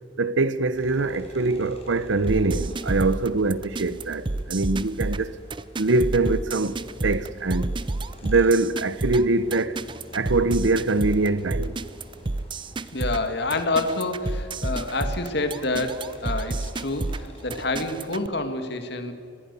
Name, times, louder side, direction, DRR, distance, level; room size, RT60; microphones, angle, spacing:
voice 1, 0.2-5.4 5.8-7.7 8.2-9.8 10.1-11.8, right 3 dB, 75° right, 0.8 m, -23 dB
sound 1, 0.7-17.6, equal, 30° left, 4.7 m, -47 dB
sound 2, 2.3-18.3, right 2 dB, 25° right, 0.5 m, -30 dB
voice 2, 12.9-19.1, left 2 dB, 55° left, 2.1 m, -28 dB
25.0 x 20.5 x 6.9 m
head